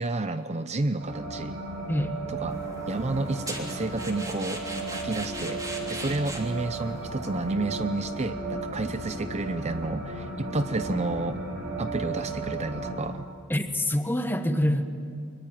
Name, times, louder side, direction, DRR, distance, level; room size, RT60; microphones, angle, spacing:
voice 1, 0.0-1.6 2.3-2.6 2.9-4.6 4.9-5.6 5.9-11.4 11.8-13.3, right 2 dB, 30° right, 10 dB, 0.6 m, -30 dB
sound 1, 1.0-13.0, right 2 dB, 50° right, 6.6 m, -35 dB
sound 2, 2.5-7.5, right 2 dB, 15° right, 3.2 m, -40 dB
voice 2, 13.5-14.8, left 1 dB, 10° left, 7 dB, 1.3 m, -25 dB
23.5 x 22.0 x 9.2 m, 2.3 s
head